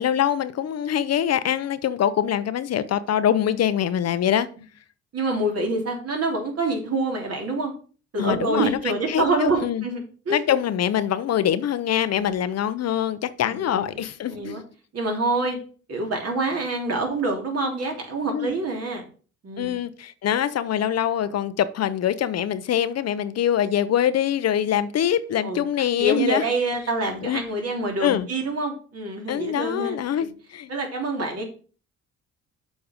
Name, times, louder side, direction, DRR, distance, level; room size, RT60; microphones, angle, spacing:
voice 1, 0.0-4.5 8.2-9.8 10.3-14.6 18.3-18.5 19.6-26.4 27.2-27.4 28.0-28.3 29.3-30.7, left 10 dB, 55° left, 0.7 m, -24 dB
voice 2, 5.1-7.7 8.1-10.0 10.3-10.4 12.2-12.4 13.5-14.0 14.3-14.6 14.9-15.6 15.9-19.0 19.4-19.8 25.4-25.6 26.0-30.3 30.7-31.5, right 2 dB, 55° right, 3.1 m, -26 dB
7.1 x 5.2 x 5.1 m
cardioid pair, 90°, 30 cm